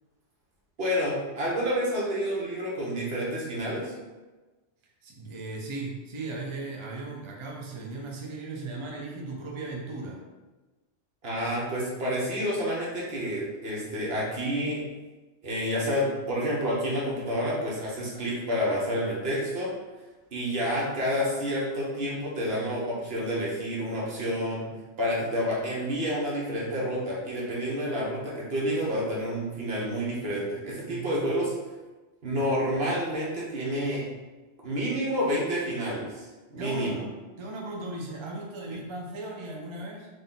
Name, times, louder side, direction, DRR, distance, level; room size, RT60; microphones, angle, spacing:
voice 1, 0.8-3.9 11.2-14.8 15.4-19.7 20.3-24.6 25.0-31.5 32.2-34.0 34.6-36.2 36.5-37.0, equal, 60° right, -5 dB, 1.3 m, -29 dB
voice 2, 5.0-10.2 30.9-31.2 36.6-37.1 37.4-40.1, right 2 dB, 40° right, -1 dB, 0.5 m, -37 dB
3.9 x 2.6 x 3.8 m, 1.2 s
omnidirectional pair, 1.2 m